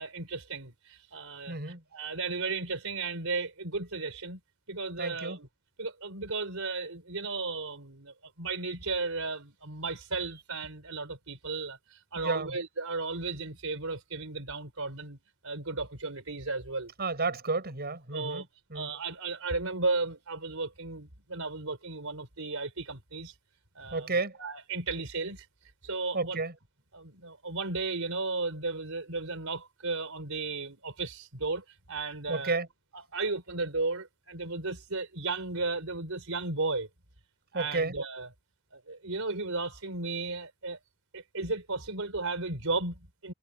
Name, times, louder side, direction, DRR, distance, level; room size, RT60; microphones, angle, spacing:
voice 1, 0.0-4.4 4.7-5.5 5.8-15.2 15.4-16.9 18.1-18.5 18.7-23.3 23.8-25.5 25.8-26.4 26.9-32.6 32.9-36.9 37.5-38.3 38.7-40.8 41.1-43.3, right 3 dB, 70° right, 5.2 m, -34 dB
voice 2, 1.5-1.8 5.0-5.4 12.2-12.6 17.0-18.9 23.9-24.4 26.1-26.5 32.3-32.7 37.5-38.0, right 3 dB, 50° right, 7.2 m, -32 dB
head